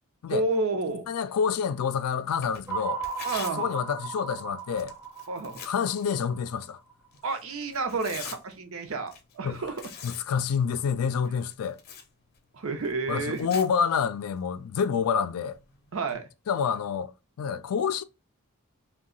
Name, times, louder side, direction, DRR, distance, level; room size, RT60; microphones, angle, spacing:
voice 1, 0.3-1.1 3.2-3.7 5.3-5.6 7.2-9.8 12.5-13.5 15.9-16.3, right 3 dB, 70° right, 0.7 m, -30 dB
voice 2, 1.1-3.0 3.6-4.9 5.6-6.8 9.4-9.6 10.0-11.8 13.1-15.6 16.5-17.1 17.4-18.0, left 6 dB, 90° left, 0.4 m, -28 dB
Tearing, 2.3-16.1, left 7 dB, 45° left, 0.6 m, -47 dB
sound 1, 2.7-6.9, right 6 dB, 10° right, 0.3 m, -36 dB
2.7 x 2.2 x 3.7 m
head